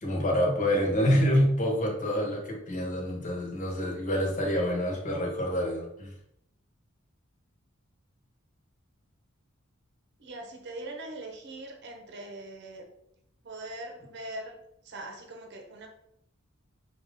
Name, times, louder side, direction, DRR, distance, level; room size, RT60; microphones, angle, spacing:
voice 1, 0.0-6.1, equal, 40° left, -1 dB, 1.3 m, -27 dB
voice 2, 10.2-12.9 13.4-14.6 14.8-15.9, right 1 dB, 55° right, 3 dB, 0.8 m, -41 dB
5.7 x 2.5 x 3.5 m, 0.75 s
head